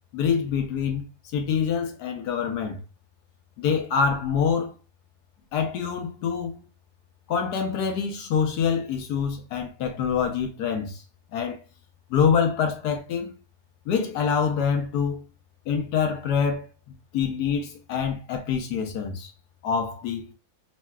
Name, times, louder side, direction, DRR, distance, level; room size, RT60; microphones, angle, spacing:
voice 1, 0.1-1.1 1.3-2.8 3.6-4.7 5.5-6.6 7.3-11.0 11.3-11.6 12.1-13.3 13.9-15.2 15.7-19.3 19.6-20.3, left 6 dB, 70° left, 1.0 m, -25 dB
3.1 x 2.7 x 2.2 m
omnidirectional pair, 2.2 m